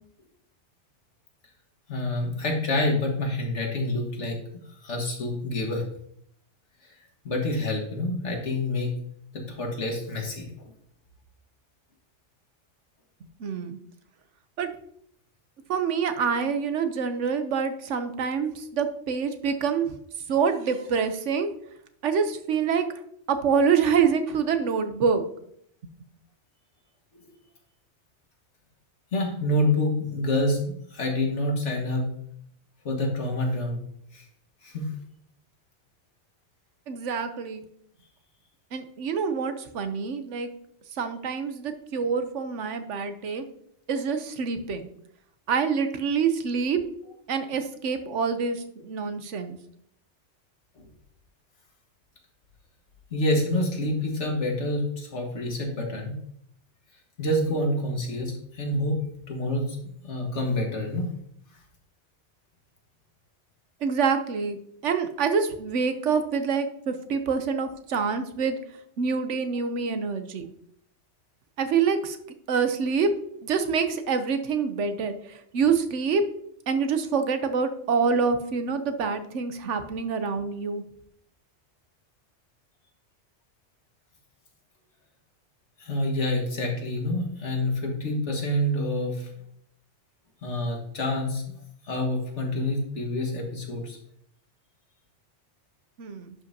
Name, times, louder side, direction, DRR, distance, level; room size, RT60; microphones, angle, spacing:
voice 1, 1.9-4.4 4.8-5.8 7.2-8.9 9.3-10.7 29.1-32.1 32.9-33.8 34.1-34.2 34.6-34.9 53.1-56.1 57.2-59.0 59.3-59.8 60.0-61.1 85.8-89.3 90.4-91.4 91.8-94.0, left 1 dB, 80° left, 1 dB, 2.0 m, -27 dB
voice 2, 13.4-13.8 14.6-14.7 15.7-20.0 20.3-21.5 22.0-22.9 23.3-25.2 25.8-25.9 36.9-37.6 38.7-40.5 40.9-43.5 43.9-44.9 45.5-46.8 47.3-49.6 63.8-68.6 69.0-70.5 71.6-72.2 72.5-73.1 73.4-76.2 76.7-80.8 96.0-96.3, right 6 dB, 85° right, 9 dB, 1.1 m, -26 dB
11.0 x 5.4 x 2.7 m, 0.69 s
omnidirectional pair, 1.2 m